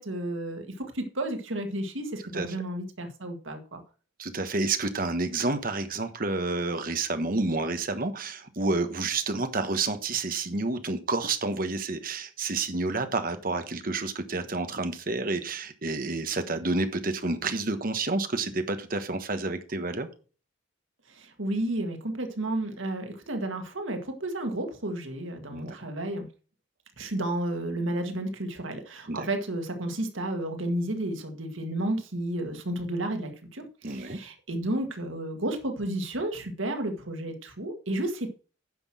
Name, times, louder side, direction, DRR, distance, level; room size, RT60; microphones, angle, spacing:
voice 1, 0.0-3.8 21.1-26.3 27.0-38.3, right 1 dB, 90° right, 2.0 m, -32 dB
voice 2, 4.2-20.1 25.5-25.8 29.1-29.3 33.8-34.2, right 3 dB, 45° right, 1.3 m, -29 dB
9.7 x 6.2 x 6.2 m
head